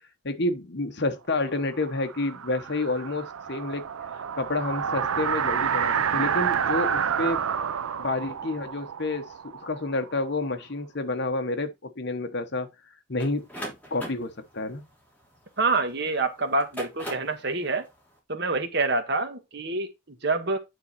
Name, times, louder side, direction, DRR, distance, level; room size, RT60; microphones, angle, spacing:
voice 1, 0.2-3.9 4.1-7.4 8.0-9.3 9.6-12.7 13.1-13.5 13.9-14.8, left 2 dB, 55° left, 1.1 m, -29 dB
sound 1, 1.5-10.3, right 7 dB, 85° right, 0.5 m, -29 dB
sound 2, 13.2-15.9 16.5-17.4, equal, 5° left, 3.1 m, -39 dB
voice 2, 15.6-17.8 18.3-20.6, right 3 dB, 55° right, 1.4 m, -27 dB
9.4 x 4.2 x 4.2 m
head